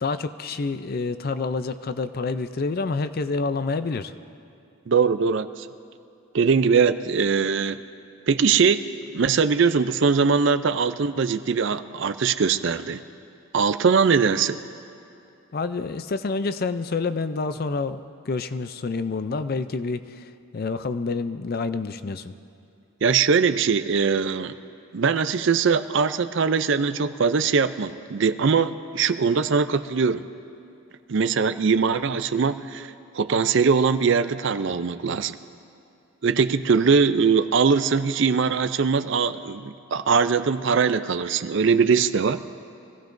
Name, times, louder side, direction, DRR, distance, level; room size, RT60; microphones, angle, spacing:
voice 1, 0.0-4.1 15.5-18.0 18.3-22.3, left 4 dB, 45° left, 11 dB, 0.4 m, -28 dB
voice 2, 4.9-5.7 6.3-7.8 8.3-8.8 9.1-13.0 13.5-14.6 23.0-24.5 24.9-30.2 31.1-35.4 36.2-42.4, right 5 dB, 55° right, 12 dB, 0.4 m, -21 dB
24.0 x 16.0 x 2.6 m, 2.6 s
head